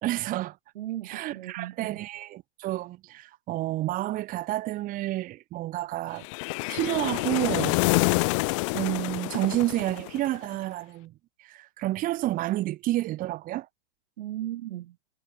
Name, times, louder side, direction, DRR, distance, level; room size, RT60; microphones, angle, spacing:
voice 1, 0.0-0.6 1.0-6.3 6.7-7.8 8.7-11.1 11.4-13.7, right 16 dB, 25° right, 2.4 m, -30 dB
voice 2, 0.7-2.0 14.2-15.0, right 14 dB, 60° right, 4.9 m, -36 dB
sound 1, 6.2-10.5, left 27 dB, 30° left, 0.5 m, -27 dB
hypercardioid pair, 150°, 32 cm